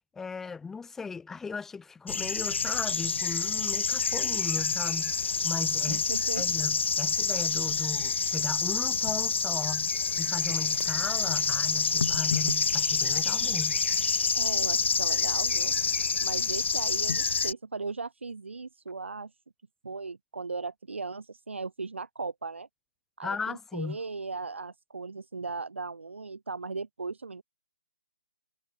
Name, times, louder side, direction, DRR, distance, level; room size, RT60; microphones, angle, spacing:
voice 1, 0.1-6.0 6.4-9.9 10.2-13.8 23.2-24.0, left 5 dB, 5° left, 2.3 m, -37 dB
sound 1, 2.1-17.5, left 5 dB, 75° left, 0.4 m, -27 dB
voice 2, 5.9-6.4 14.3-15.7 16.2-19.3 19.8-22.7 23.2-27.4, right 4 dB, 85° right, 2.1 m, -37 dB
hypercardioid pair, 155°, 6 cm